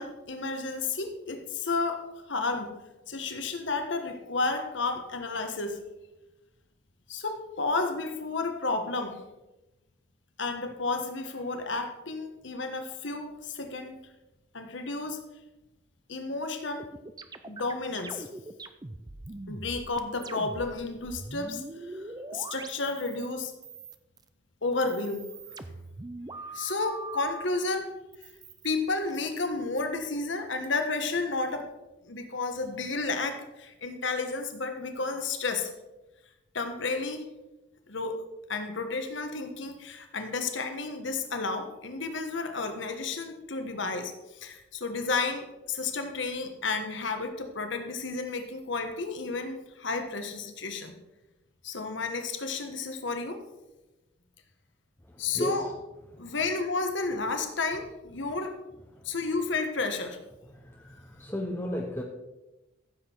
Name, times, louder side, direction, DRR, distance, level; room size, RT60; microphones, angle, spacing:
voice 1, 0.0-2.7 3.1-5.8 7.1-9.2 10.4-14.0 14.5-15.2 16.1-16.8 17.4-18.3 19.5-22.0 22.3-23.5 24.6-25.2 26.5-27.9 28.6-31.7 32.0-35.7 36.5-37.3 37.9-38.2 38.5-50.9 51.6-53.4 55.2-55.7 56.2-58.5 59.0-60.2, left 3 dB, 65° left, 1.4 m, -32 dB
sound 1, 16.8-20.7 21.0-23.3 23.6-24.3 24.7-27.5 28.1-29.3, right 2 dB, 20° right, 0.5 m, -42 dB
voice 2, 55.3-55.7 60.6-62.0, equal, 10° left, 0.8 m, -33 dB
14.5 x 7.6 x 4.6 m
head